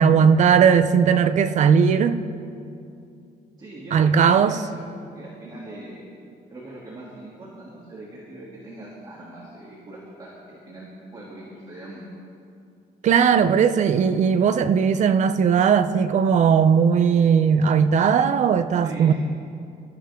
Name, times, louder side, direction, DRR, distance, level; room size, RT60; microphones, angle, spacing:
voice 1, 0.0-2.2 3.9-4.6 13.0-19.1, right 7 dB, 50° right, 0.7 m, -18 dB
voice 2, 3.6-6.0 6.5-12.1 18.8-19.1, right 1 dB, 25° right, 2.9 m, -41 dB
26.5 x 14.0 x 3.8 m
cardioid pair, 175°, 16 cm